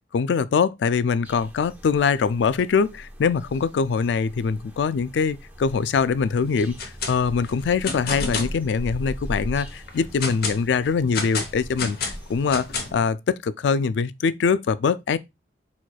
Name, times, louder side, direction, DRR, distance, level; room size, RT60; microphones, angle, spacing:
voice 1, 0.1-15.2, left 5 dB, 80° left, 0.3 m, -23 dB
sound 1, 1.2-12.9, equal, 10° right, 0.9 m, -39 dB
sound 2, 6.6-7.1 7.4-8.6 9.1-9.2 9.7-10.6 11.1-13.1, left 4 dB, 55° left, 1.0 m, -30 dB
4.5 x 4.3 x 2.3 m
head